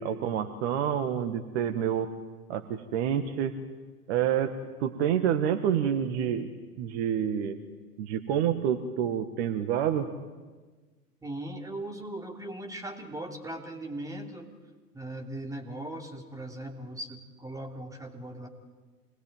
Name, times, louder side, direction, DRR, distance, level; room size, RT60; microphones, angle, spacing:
voice 1, 0.0-2.1 2.5-3.5 4.1-4.5 4.8-6.5 6.8-7.6 8.0-10.1, right 9 dB, 40° right, 9 dB, 1.7 m, -28 dB
voice 2, 11.2-14.5 14.9-18.5, right 1 dB, 5° right, 4 dB, 2.9 m, -39 dB
27.0 x 20.5 x 9.2 m, 1.3 s
figure-of-eight pair, 105°, 48 cm